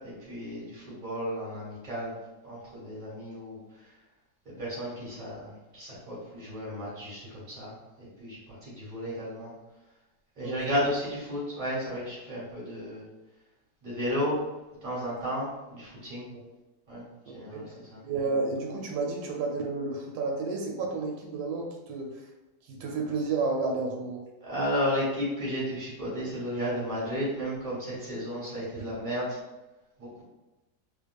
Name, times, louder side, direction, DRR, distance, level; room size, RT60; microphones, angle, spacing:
voice 1, 0.0-2.1 2.4-3.6 4.4-9.5 10.4-13.0 13.8-14.4 14.8-16.3 16.9-17.0 17.3-17.6 17.9-18.0 24.4-29.4 30.0-30.2, equal, 25° right, -6 dB, 1.4 m, -33 dB
voice 2, 10.4-10.8 16.3-16.4 17.3-17.8 18.0-22.3 22.6-24.2 28.8-28.9, right 3 dB, 90° right, 1 dB, 1.3 m, -31 dB
3.3 x 3.2 x 2.3 m, 1.0 s
omnidirectional pair, 2.0 m